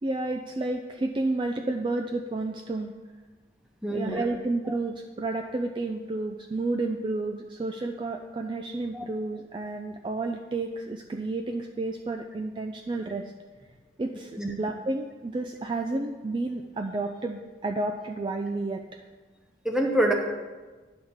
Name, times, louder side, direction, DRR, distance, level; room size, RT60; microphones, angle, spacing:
voice 1, 0.0-2.9 3.9-13.3 14.0-18.8, right 2 dB, 30° right, 3 dB, 0.3 m, -31 dB
voice 2, 3.8-4.2 4.7-4.8 8.9-9.0 14.4-14.5 19.6-20.1, right 1 dB, 5° right, 1 dB, 0.9 m, -26 dB
10.0 x 3.6 x 6.3 m, 1.3 s
head